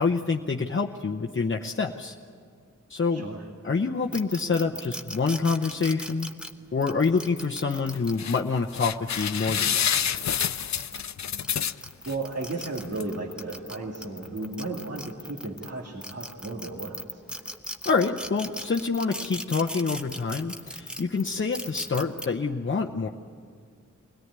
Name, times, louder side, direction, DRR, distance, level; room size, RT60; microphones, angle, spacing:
voice 1, 0.0-2.1 2.9-3.3 3.6-6.3 6.7-10.1 17.8-23.1, left 4 dB, 40° left, 1 dB, 0.8 m, -27 dB
voice 2, 3.1-3.4 11.5-17.2, right 2 dB, 55° right, -3 dB, 2.4 m, -35 dB
sound 1, 4.1-8.4 9.0-11.0 11.4-15.7 16.0-22.3, equal, 5° right, 1.0 m, -38 dB
sound 2, 7.9-8.4 8.7-12.1 12.6-12.7 13.0-13.1, left 8 dB, 65° left, 0.5 m, -28 dB
23.0 x 17.5 x 9.6 m, 2.1 s
wide cardioid pair, 85°, 30 cm